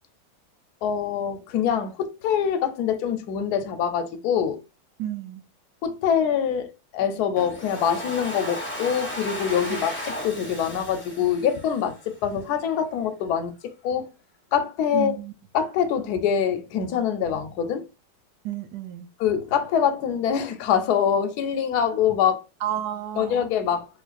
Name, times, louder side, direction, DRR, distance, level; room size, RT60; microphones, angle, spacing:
voice 1, 0.8-4.6 5.8-13.5 13.8-14.1 14.5-15.1 15.5-17.8 19.2-22.4 23.2-23.9, left 8 dB, 70° left, 1.0 m, -24 dB
voice 2, 5.0-5.4 9.7-9.9 14.9-15.3 18.4-19.1 22.6-23.4, right 11 dB, 75° right, 1.1 m, -31 dB
Domestic sounds home sounds, 7.4-12.3, left 1 dB, 20° left, 0.3 m, -35 dB
3.5 x 3.1 x 2.4 m
omnidirectional pair, 1.9 m